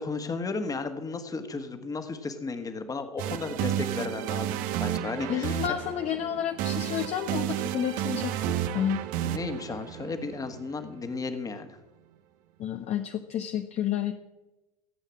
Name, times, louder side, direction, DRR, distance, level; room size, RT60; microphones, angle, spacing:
voice 1, 0.0-5.6 9.2-11.8, left 4 dB, 15° left, 8 dB, 1.6 m, -34 dB
sound 1, 3.2-11.1, right 11 dB, 45° right, 0.8 m, -32 dB
voice 2, 5.3-9.0 12.6-14.1, left 10 dB, 35° left, 7 dB, 0.8 m, -30 dB
15.5 x 8.3 x 7.5 m, 1.1 s
figure-of-eight pair, 80°, 20 cm